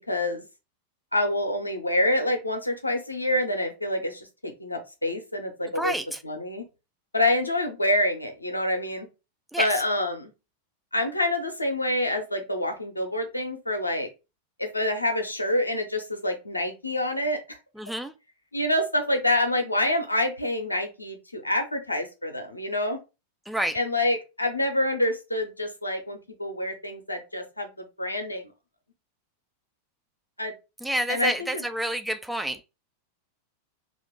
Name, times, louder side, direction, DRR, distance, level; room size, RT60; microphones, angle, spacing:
voice 1, 0.1-0.4 1.1-5.9 6.2-6.6 7.1-9.1 9.6-10.3 10.9-14.1 14.6-17.6 18.5-23.0 23.7-28.5 30.4-30.5 31.1-31.6, left 1 dB, 85° left, 0.7 m, -27 dB
voice 2, 5.8-6.2 9.5-9.7 17.8-18.1 23.5-23.8 30.8-32.6, right 1 dB, 5° right, 0.4 m, -28 dB
2.9 x 2.5 x 3.5 m
figure-of-eight pair, 90°, 0 cm